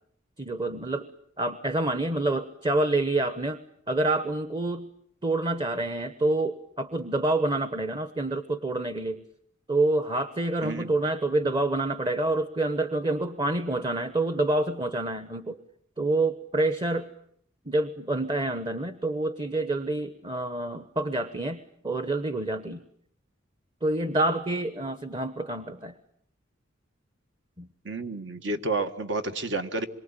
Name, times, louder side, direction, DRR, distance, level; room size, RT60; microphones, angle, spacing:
voice 1, 0.4-1.1 1.4-3.6 3.9-4.9 5.2-9.2 9.7-15.6 16.0-17.1 17.6-22.8 23.8-26.0 27.6-27.7, right 2 dB, 25° right, 11 dB, 1.1 m, -27 dB
voice 2, 10.6-10.9 27.8-29.9, right 2 dB, 65° right, 8 dB, 1.7 m, -30 dB
26.5 x 23.5 x 8.9 m, 0.69 s
head